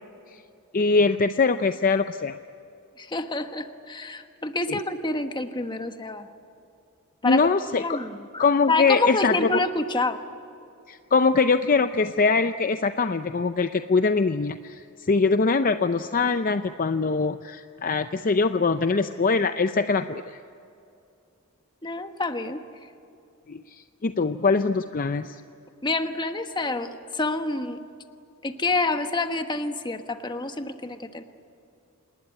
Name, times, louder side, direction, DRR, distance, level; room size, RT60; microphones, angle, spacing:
voice 1, 0.7-2.3 4.7-4.8 7.2-8.0 8.4-9.6 10.9-20.4 23.5-25.4, left 4 dB, 40° left, 9 dB, 0.6 m, -23 dB
voice 2, 3.0-6.3 7.2-10.2 21.8-22.6 25.8-27.8 28.4-31.2, left 3 dB, 20° left, 7 dB, 1.3 m, -28 dB
27.5 x 20.0 x 9.9 m, 2.6 s
head